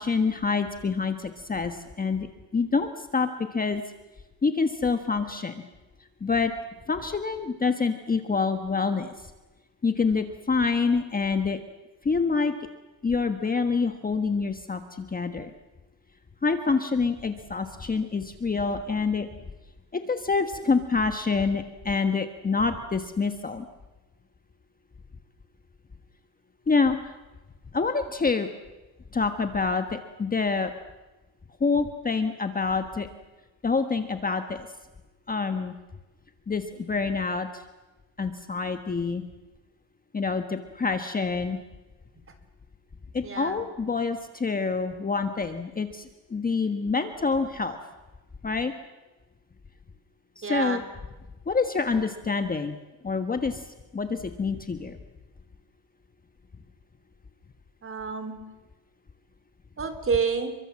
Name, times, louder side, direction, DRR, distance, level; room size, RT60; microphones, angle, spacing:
voice 1, 0.0-3.8 4.4-5.6 6.2-6.5 6.9-9.1 9.8-11.6 12.0-12.5 13.0-15.5 16.4-19.3 19.9-23.6 26.7-27.2 27.7-28.5 29.1-30.7 31.6-33.1 33.6-34.7 35.3-35.7 36.5-37.6 38.2-39.2 40.1-41.6 43.1-47.8 48.4-48.7 50.4-50.8 51.5-52.8 53.0-53.6 53.9-55.0, left 4 dB, 20° left, 7 dB, 1.4 m, -26 dB
voice 2, 43.2-43.6 50.4-50.8 57.8-58.4 59.8-60.6, right 5 dB, 25° right, 9 dB, 3.6 m, -28 dB
29.0 x 24.0 x 7.6 m, 1.1 s
cardioid pair, 145°, 47 cm